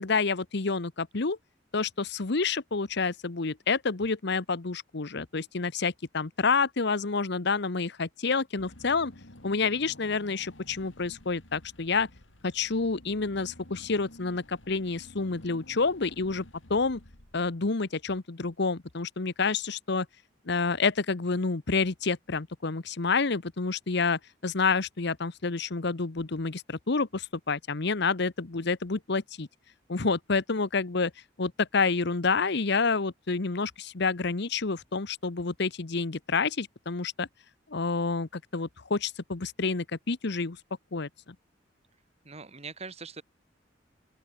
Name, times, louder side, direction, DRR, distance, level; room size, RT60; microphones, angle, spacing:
voice 1, 0.0-1.4 1.7-9.1 9.4-12.1 12.4-16.4 16.7-17.0 17.3-20.1 20.5-29.5 29.9-31.1 31.4-37.3 37.7-40.6 40.9-41.1, left 4 dB, 65° left, 1.0 m, -28 dB
Car / Engine, 8.6-17.8, left 1 dB, 90° left, 4.5 m, -52 dB
voice 2, 42.2-43.2, right 4 dB, 35° right, 1.9 m, -42 dB
open air
head